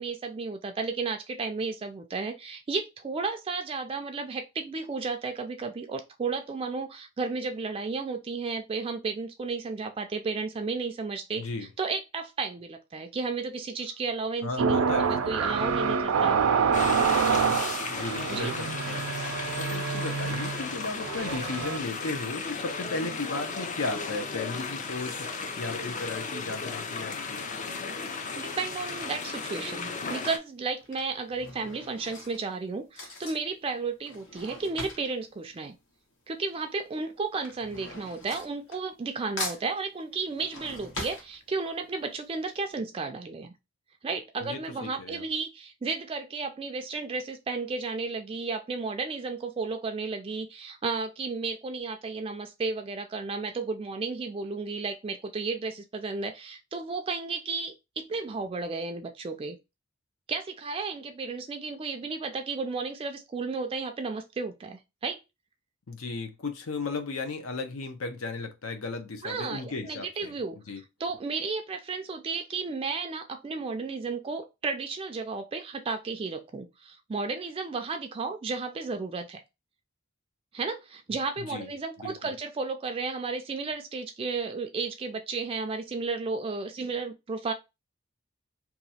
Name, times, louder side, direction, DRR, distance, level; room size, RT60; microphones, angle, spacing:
voice 1, 0.0-16.4 18.3-18.5 28.4-35.7 36.3-43.5 44.0-59.6 60.3-65.2 69.2-70.6 71.0-79.4 80.5-87.5, right 4 dB, 25° right, 0.3 m, -33 dB
voice 2, 11.4-11.7 14.4-15.3 17.9-19.0 19.6-27.4 44.4-45.2 65.9-70.4 70.7-70.8 81.4-81.7 82.0-82.3, left 3 dB, 80° left, 0.7 m, -35 dB
sound 1, 14.6-21.8, right 6 dB, 90° right, 0.5 m, -27 dB
sound 2, 16.7-30.4, left 4 dB, 35° left, 0.5 m, -35 dB
Drawer open or close / Cutlery silverware, 29.7-29.8 30.6-36.5 36.7-39.1 39.4-41.9 42.3-42.4 42.6-42.7, left 2 dB, 65° left, 1.1 m, -41 dB
2.9 x 2.4 x 4.1 m
head